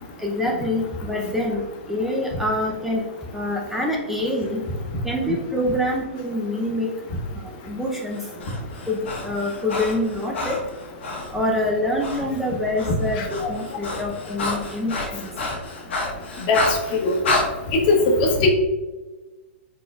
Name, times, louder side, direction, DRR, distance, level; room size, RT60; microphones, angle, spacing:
voice 1, 0.2-1.6 1.9-3.0 3.3-4.6 5.0-6.9 7.3-8.3 8.9-10.6 11.3-15.3, left 1 dB, 5° right, -2 dB, 0.6 m, -25 dB
Breathing, 8.1-11.3 12.0-12.2 12.5-17.5, left 2 dB, 70° left, 1.1 m, -29 dB
voice 2, 13.2-13.5 16.5-16.6 16.9-17.1 17.7-18.5, left 3 dB, 45° left, 2 dB, 1.0 m, -20 dB
4.7 x 4.1 x 2.4 m, 1.2 s
hypercardioid pair, 120°, 6 cm